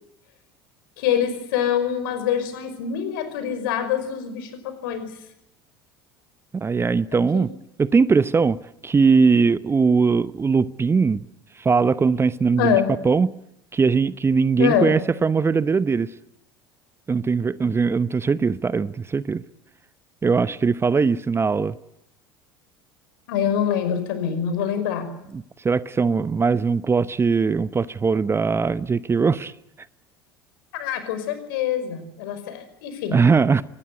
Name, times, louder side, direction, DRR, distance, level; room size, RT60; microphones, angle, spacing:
voice 1, 1.0-5.1 7.1-7.5 12.6-12.9 14.6-15.0 23.3-25.1 30.7-33.2, left 8 dB, 65° left, 5.6 m, -25 dB
voice 2, 6.5-7.5 7.8-8.6 8.8-11.2 11.6-12.8 13.0-13.3 13.7-16.1 17.1-19.4 20.2-21.7 25.3-29.5 33.1-33.6, right 5 dB, 20° right, 0.9 m, -20 dB
24.5 x 20.0 x 9.4 m
figure-of-eight pair, 70°, 12 cm